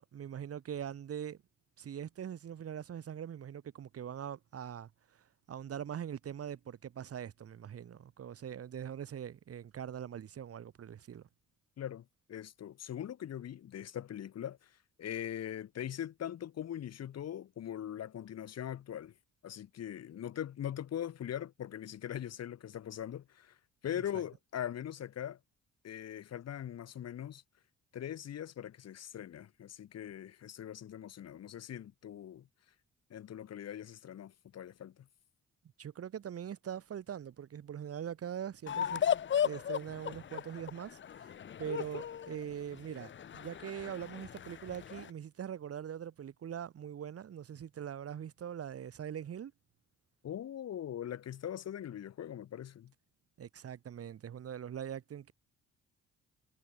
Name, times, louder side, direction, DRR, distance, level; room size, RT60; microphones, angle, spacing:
voice 1, 0.0-1.4 1.8-11.3 24.1-24.2 35.8-39.0 39.4-49.5 53.4-55.3, right 9 dB, 50° right, 1.4 m, -42 dB
voice 2, 11.8-19.1 19.4-23.6 23.8-25.4 25.8-27.4 27.9-32.5 33.1-35.1 50.2-52.9, left 10 dB, 55° left, 1.4 m, -41 dB
sound 1, 38.7-45.1, left 8 dB, 40° left, 0.7 m, -36 dB
cardioid pair, 90°, 30 cm